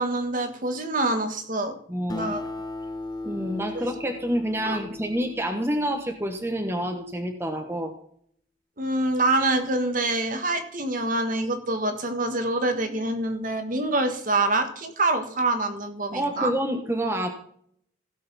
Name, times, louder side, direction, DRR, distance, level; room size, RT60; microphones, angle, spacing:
voice 1, 0.0-1.7 2.1-2.5 3.7-3.8 4.6-4.8 8.8-16.5, right 2 dB, 45° right, 7 dB, 1.5 m, -26 dB
voice 2, 1.9-2.3 3.2-7.9 16.1-17.3, equal, 10° right, 4 dB, 1.1 m, -28 dB
Acoustic guitar, 2.1-6.9, left 2 dB, 20° left, 0.9 m, -37 dB
16.5 x 6.8 x 4.1 m, 0.65 s
head